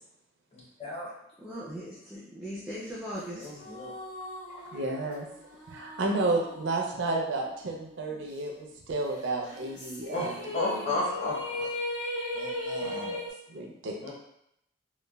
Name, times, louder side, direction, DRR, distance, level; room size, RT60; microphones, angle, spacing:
voice 1, 0.5-1.1 3.3-3.9 10.1-11.6 14.0-14.1, left 2 dB, 35° left, -6 dB, 0.7 m, -32 dB
voice 2, 1.4-3.7, equal, 5° right, -7 dB, 0.3 m, -39 dB
sound 1, 3.1-7.8 8.1-8.2 9.4-13.3, left 2 dB, 70° left, 1.2 m, -38 dB
voice 3, 4.5-5.3 5.7-10.4 10.6-11.0 11.2-11.3 11.6-11.7 12.3-13.2 13.5-14.1, right 2 dB, 70° right, 1 dB, 0.4 m, -32 dB
3.1 x 2.1 x 2.2 m, 0.78 s
head